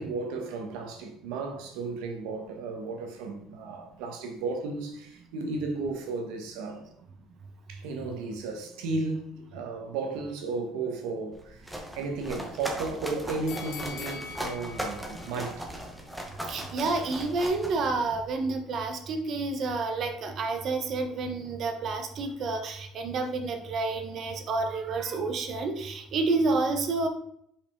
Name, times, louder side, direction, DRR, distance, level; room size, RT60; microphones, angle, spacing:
voice 1, 0.0-6.8 7.7-11.6 11.9-15.7, right 3 dB, 85° right, 1.3 m, -34 dB
sound 1, 11.3-18.3, equal, 5° right, 0.9 m, -38 dB
sound 2, 13.5-16.6 17.0-17.1, left 6 dB, 75° left, 0.6 m, -44 dB
voice 2, 16.5-27.1, right 3 dB, 45° right, 0.9 m, -29 dB
5.3 x 4.7 x 3.7 m
cardioid pair, 140°, 0 cm